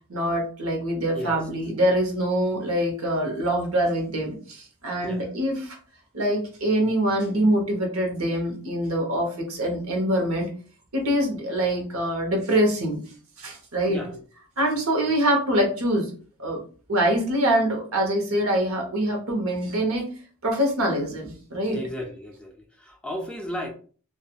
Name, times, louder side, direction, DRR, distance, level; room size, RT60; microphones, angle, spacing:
voice 1, 0.1-5.8 6.1-10.5 10.9-13.0 13.4-14.2 14.6-16.1 16.4-16.6 16.9-20.1 20.4-21.8, right 1 dB, 70° right, 1 dB, 0.9 m, -24 dB
voice 2, 21.7-23.7, equal, 5° left, 1 dB, 0.4 m, -34 dB
2.8 x 2.4 x 2.3 m, 0.41 s
head